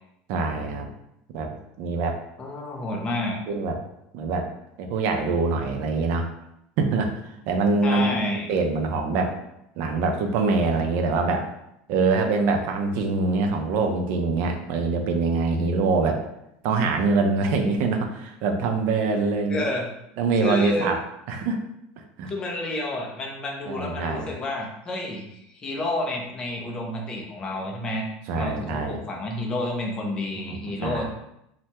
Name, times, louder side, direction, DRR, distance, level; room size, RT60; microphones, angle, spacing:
voice 1, 0.3-0.9 1.3-2.2 3.5-3.8 4.1-4.5 4.8-6.3 6.8-7.1 7.5-9.4 9.8-11.5 11.9-16.2 16.6-19.7 20.2-21.0 21.3-21.6 22.2-22.3 23.7-24.3 28.3-29.0 30.4-31.1, right 3 dB, 55° right, 4 dB, 0.5 m, -24 dB
voice 2, 2.4-3.4 7.8-8.5 19.5-19.9 20.4-20.9 22.3-28.0 28.4-31.1, left 1 dB, 20° left, -1 dB, 0.5 m, -30 dB
3.3 x 2.1 x 2.8 m, 0.81 s
cardioid pair, 155°, 4 cm